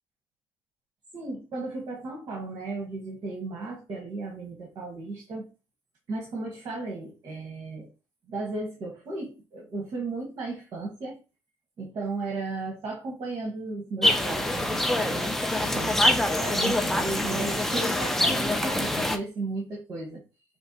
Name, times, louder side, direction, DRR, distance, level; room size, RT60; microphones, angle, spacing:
voice 1, 1.1-5.5 6.1-7.9 8.3-11.2 11.8-20.2, right 3 dB, 45° right, 1.2 m, -35 dB
sound 1, 14.0-19.2, left 1 dB, 5° left, 0.4 m, -25 dB
5.2 x 2.9 x 2.8 m
cardioid pair, 175°, 8 cm